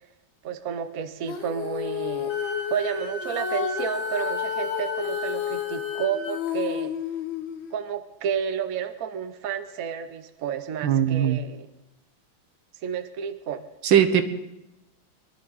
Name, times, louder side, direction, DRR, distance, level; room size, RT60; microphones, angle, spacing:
voice 1, 0.4-2.4 2.7-6.9 7.7-11.7 12.8-13.7, right 8 dB, 55° right, 8 dB, 1.2 m, -31 dB
Female singing, 1.2-7.7, left 10 dB, 75° left, 1.9 m, -31 dB
Wind instrument woodwind instrument, 2.3-6.3, equal, 25° right, 7.4 m, -36 dB
voice 2, 10.8-11.4 13.8-14.2, right 9 dB, 80° right, 9 dB, 1.9 m, -19 dB
23.0 x 12.0 x 4.1 m, 0.95 s
omnidirectional pair, 2.2 m